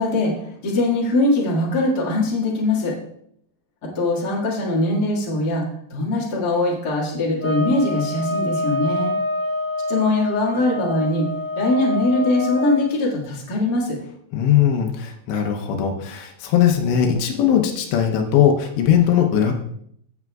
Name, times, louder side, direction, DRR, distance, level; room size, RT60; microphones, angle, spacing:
voice 1, 0.0-2.9 3.9-5.6 5.9-9.1 9.9-11.3 11.5-14.0, left 2 dB, 40° left, -2 dB, 1.4 m, -21 dB
sound 1, 7.4-12.8, left 2 dB, 5° right, 1.7 m, -26 dB
voice 2, 14.3-19.5, left 9 dB, 85° left, 2 dB, 3.1 m, -19 dB
15.0 x 8.0 x 2.4 m, 0.69 s
omnidirectional pair, 5.0 m